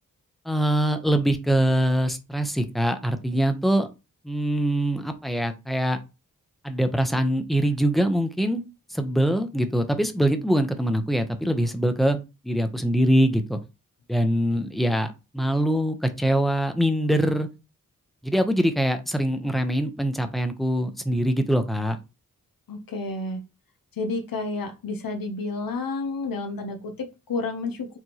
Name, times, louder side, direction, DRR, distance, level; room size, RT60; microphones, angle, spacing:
voice 1, 0.4-3.9 4.2-6.0 6.6-8.6 8.9-12.2 12.4-13.6 14.1-17.5 18.2-22.0, equal, ahead, 7 dB, 0.8 m, -23 dB
voice 2, 22.7-23.4 23.9-28.0, left 3 dB, 75° left, 6 dB, 0.8 m, -30 dB
4.7 x 2.5 x 2.9 m, 0.27 s
cardioid pair, 45°, 35 cm